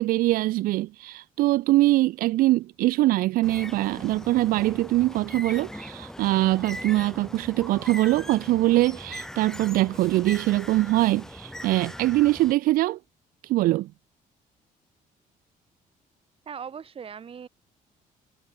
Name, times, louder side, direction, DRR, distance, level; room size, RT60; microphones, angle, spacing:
voice 1, 0.0-13.0 13.4-13.9, right 17 dB, 75° right, 0.4 m, -23 dB
Bird, 3.4-12.5, left 1 dB, 5° left, 2.6 m, -40 dB
voice 2, 16.5-17.5, right 7 dB, 40° right, 5.1 m, -39 dB
cardioid pair, 125°, 15 cm